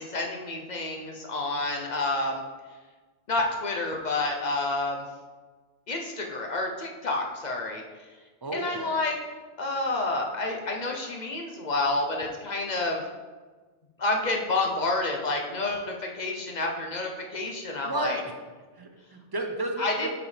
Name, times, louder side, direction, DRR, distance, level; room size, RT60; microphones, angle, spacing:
voice 1, 0.0-2.4 3.3-5.0 5.9-7.8 8.5-9.1 9.6-13.0 14.0-18.2 19.8-20.1, left 2 dB, 45° left, 1 dB, 0.7 m, -29 dB
voice 2, 8.4-9.0 17.8-18.3 18.7-20.1, right 2 dB, 35° right, 4 dB, 0.4 m, -33 dB
7.1 x 5.2 x 3.2 m, 1.4 s
omnidirectional pair, 1.2 m